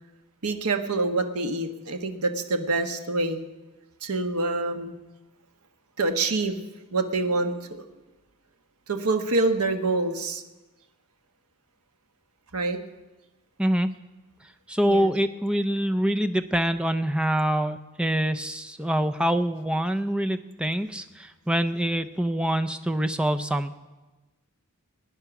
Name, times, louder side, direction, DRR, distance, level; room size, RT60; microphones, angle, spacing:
voice 1, 0.4-3.5 4.0-4.9 6.0-6.6 6.9-7.8 8.9-10.4 12.5-12.8 14.8-15.1, right 3 dB, 85° right, 6 dB, 1.2 m, -26 dB
voice 2, 13.6-13.9 14.7-23.7, equal, 5° right, 8 dB, 0.5 m, -25 dB
21.0 x 9.6 x 5.9 m, 1.2 s
head